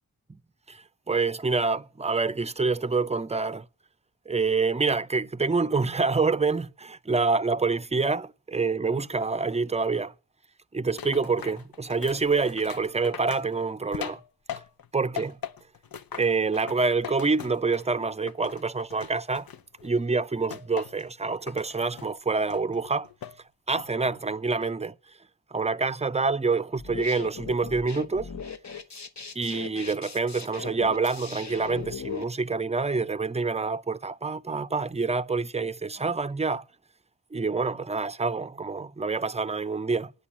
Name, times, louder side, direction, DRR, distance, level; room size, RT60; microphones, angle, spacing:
voice 1, 0.7-3.7 4.3-10.1 10.7-14.2 14.9-15.4 16.2-19.5 19.8-23.1 23.7-24.9 25.5-28.3 29.4-36.6 37.3-40.1, right 4 dB, 20° right, 0.5 m, -27 dB
sound 1, 11.0-14.9 15.2-17.9 18.3-19.9 20.5-21.1 21.5-22.1 22.5-23.4 23.8-24.2, left 8 dB, 75° left, 0.7 m, -40 dB
sound 2, 26.8-32.2, left 6 dB, 50° left, 1.0 m, -38 dB
9.5 x 8.5 x 7.2 m
cardioid pair, 40°, 35 cm